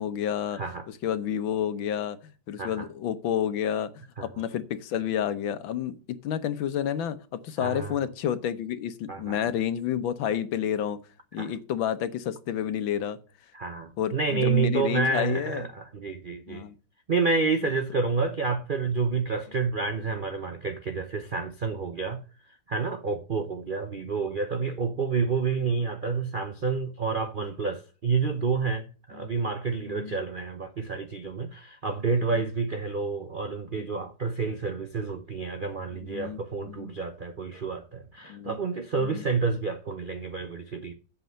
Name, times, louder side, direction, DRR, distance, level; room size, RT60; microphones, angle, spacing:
voice 1, 0.0-0.6 0.9-3.9 4.2-11.0 11.3-13.2 14.0-15.7 16.5-16.7 29.2-29.3 29.9-30.2 32.3-32.5 33.8-33.9 36.1-36.9 38.3-38.6 39.0-39.2, left 9 dB, 90° left, 1.7 m, -30 dB
voice 2, 0.5-0.9 2.6-2.9 4.2-4.3 7.6-8.0 9.1-9.4 11.4-11.5 13.5-16.6 17.1-22.2 22.7-40.9, right 4 dB, 65° right, 0.5 m, -29 dB
8.1 x 5.6 x 7.5 m
omnidirectional pair, 2.1 m